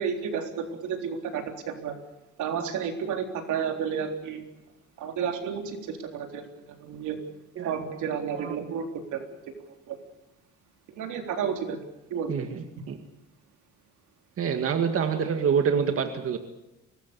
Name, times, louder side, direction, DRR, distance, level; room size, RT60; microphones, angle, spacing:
voice 1, 0.0-1.9 2.4-4.4 5.0-6.4 6.8-7.2 7.6-9.2 9.9-10.0 11.0-11.8 12.1-12.3, right 7 dB, 90° right, 4 dB, 3.8 m, -31 dB
voice 2, 7.6-7.9 8.3-8.7 12.3-13.0 14.4-16.4, right 7 dB, 50° right, 6 dB, 2.0 m, -27 dB
24.5 x 20.0 x 6.9 m, 0.96 s
cardioid pair, 135°, 29 cm